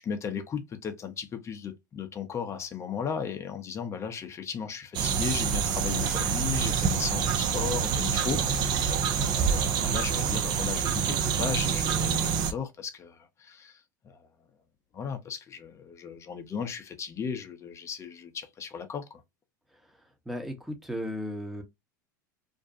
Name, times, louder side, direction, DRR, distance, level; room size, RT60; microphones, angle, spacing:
voice 1, 0.0-13.7 14.0-14.2 14.9-19.2, left 7 dB, 30° left, 0.7 m, -36 dB
sound 1, 4.9-12.5, right 7 dB, 45° right, 0.5 m, -27 dB
voice 2, 20.3-21.6, equal, ahead, 0.8 m, -35 dB
2.6 x 2.2 x 2.6 m
hypercardioid pair, 85°, 10 cm